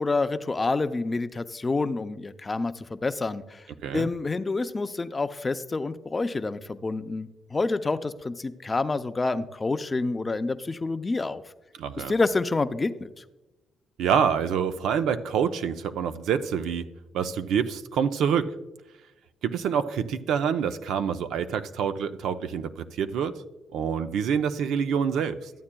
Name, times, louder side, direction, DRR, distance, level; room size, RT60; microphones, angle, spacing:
voice 1, 0.0-3.6 3.9-11.4 12.1-13.2, left 3 dB, 25° left, 11 dB, 0.4 m, -28 dB
voice 2, 11.7-12.1 14.0-16.9 17.1-18.6 19.4-23.3 23.7-25.5, right 7 dB, 80° right, 10 dB, 0.5 m, -26 dB
12.5 x 8.5 x 2.2 m, 1.0 s
cardioid pair, 90°, 0 cm